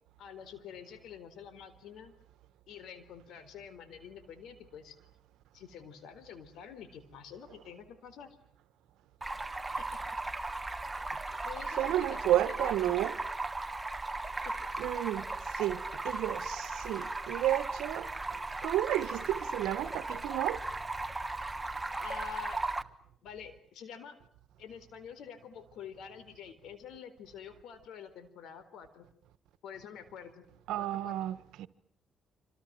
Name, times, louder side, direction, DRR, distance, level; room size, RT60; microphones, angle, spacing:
voice 1, 0.2-2.1 2.7-5.0 5.5-8.4 9.8-10.0 11.4-13.0 14.4-14.6 22.0-22.6 23.2-24.2 24.6-29.1 29.6-30.4 30.8-31.2, left 8 dB, 80° left, 4.0 m, -47 dB
Stream, 9.2-22.8, right 2 dB, 15° right, 1.4 m, -37 dB
voice 2, 11.8-13.2 14.8-18.1 18.6-20.6 30.7-31.7, right 13 dB, 90° right, 1.3 m, -32 dB
sound 1, 20.5-22.7 23.1-23.2, left 4 dB, 30° left, 4.3 m, -58 dB
26.5 x 26.5 x 7.8 m
cardioid pair, 90°, 0 cm